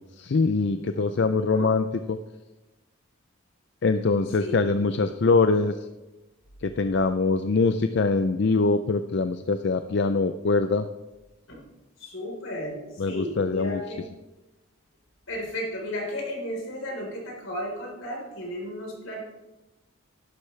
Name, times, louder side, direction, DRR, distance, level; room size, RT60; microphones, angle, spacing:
voice 1, 0.0-2.2 3.8-5.7 6.6-10.8 13.0-13.8, left 3 dB, 55° left, 9 dB, 0.4 m, -23 dB
voice 2, 0.8-1.7 4.4-4.6 11.5-11.6 12.0-14.1 15.3-19.2, left 1 dB, 75° left, -1 dB, 4.0 m, -34 dB
11.5 x 11.5 x 3.3 m, 1.1 s
head